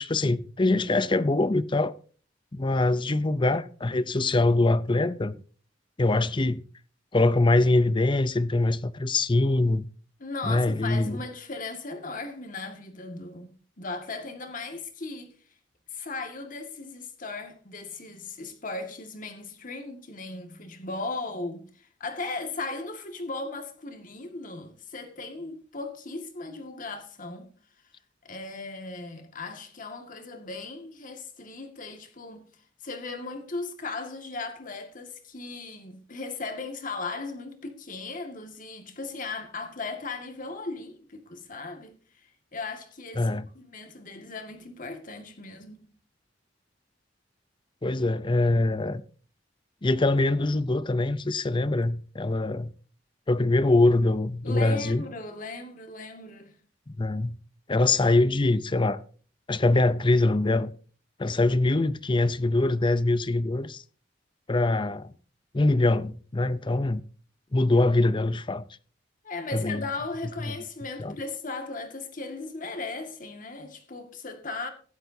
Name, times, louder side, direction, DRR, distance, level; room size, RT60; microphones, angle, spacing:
voice 1, 0.0-1.9 2.5-5.4 6.0-6.6 7.1-9.8 10.4-11.2 43.2-43.5 47.8-49.0 49.8-52.7 53.3-55.0 56.9-57.4 57.7-59.0 59.5-60.7 61.2-63.8 64.5-65.1 65.5-67.0 67.5-68.6 69.5-69.9 71.0-71.1, left 2 dB, 25° left, 0.6 m, -23 dB
voice 2, 10.2-15.3 15.9-27.5 28.2-45.9 54.4-56.6 69.2-74.7, left 3 dB, 45° left, 1.9 m, -37 dB
16.0 x 11.5 x 2.7 m
head